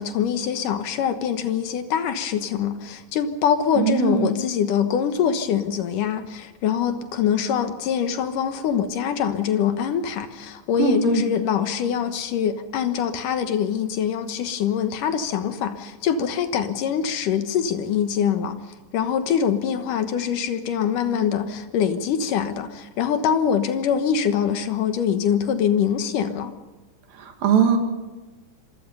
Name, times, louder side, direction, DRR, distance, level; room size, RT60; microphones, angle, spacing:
voice 1, 0.0-18.6 18.9-26.5, left 8 dB, 70° left, 9 dB, 2.7 m, -24 dB
voice 2, 3.8-4.3 10.8-11.2 27.2-27.8, right 7 dB, 80° right, 4 dB, 4.0 m, -20 dB
26.5 x 23.5 x 5.6 m, 1.2 s
omnidirectional pair, 4.1 m